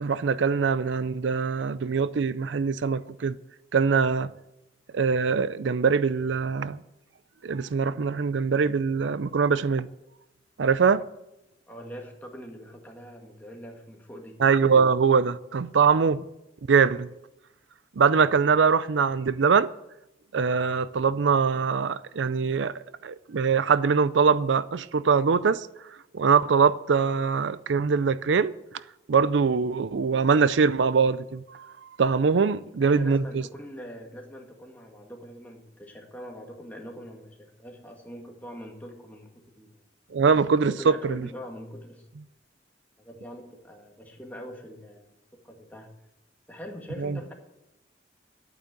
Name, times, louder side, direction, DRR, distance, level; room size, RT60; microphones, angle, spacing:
voice 1, 0.0-3.4 3.7-4.3 4.9-6.8 7.4-9.9 10.6-11.0 14.4-16.2 16.7-17.1 18.0-19.7 20.3-22.7 23.0-25.7 26.1-28.5 29.1-31.7 32.0-33.2 40.1-40.7 41.0-41.2 47.0-47.2, right 5 dB, 85° right, 0.5 m, -23 dB
voice 2, 11.7-14.4 32.4-32.5 32.8-39.8 40.7-42.1 43.0-45.1 45.4-45.9 46.5-47.3, equal, 10° left, 2.0 m, -43 dB
11.5 x 8.9 x 7.8 m
head